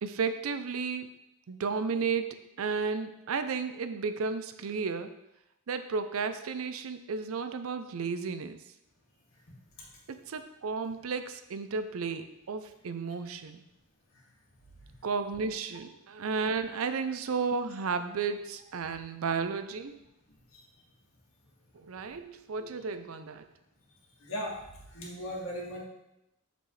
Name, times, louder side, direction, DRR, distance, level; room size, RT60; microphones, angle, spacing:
voice 1, 0.0-1.1 1.5-5.2 5.7-8.6 10.1-13.7 15.0-20.0 21.7-23.5, right 5 dB, 80° right, 10 dB, 0.5 m, -33 dB
voice 2, 24.2-24.5 24.9-25.8, equal, 70° left, -3 dB, 2.0 m, -37 dB
6.6 x 6.1 x 3.2 m, 0.87 s
head